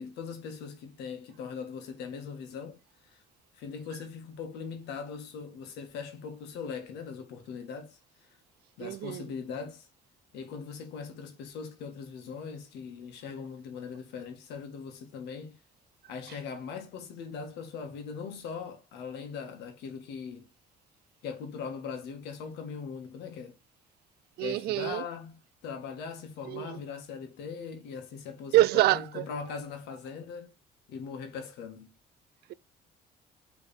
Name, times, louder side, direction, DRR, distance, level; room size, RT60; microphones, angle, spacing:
voice 1, 0.0-2.8 3.1-3.2 3.5-8.0 8.8-9.9 10.3-15.6 16.1-20.5 21.2-23.6 24.4-30.5 30.9-31.9, left 6 dB, 85° left, 2.0 m, -40 dB
voice 2, 8.8-9.2 24.4-25.0 26.4-26.8 28.5-29.2, right 15 dB, 75° right, 0.4 m, -26 dB
5.6 x 4.0 x 4.3 m
cardioid pair, 110°, 17 cm